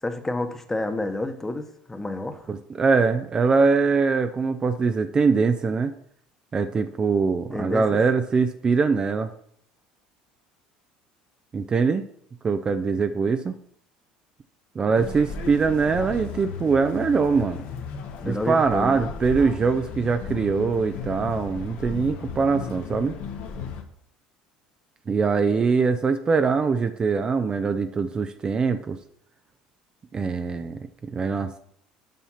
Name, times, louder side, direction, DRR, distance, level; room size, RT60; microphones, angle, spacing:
voice 1, 0.0-2.5 7.5-8.0 18.2-19.1, left 2 dB, 15° left, 7 dB, 1.2 m, -30 dB
voice 2, 2.5-5.9 6.5-9.3 11.5-12.0 12.4-13.5 14.8-17.6 18.2-23.2 25.1-29.0 30.1-31.6, right 5 dB, 30° right, 9 dB, 0.6 m, -23 dB
sound 1, 15.0-23.8, left 5 dB, 65° left, 1.4 m, -35 dB
7.4 x 5.6 x 5.7 m, 0.67 s
supercardioid pair, 90°, 3 cm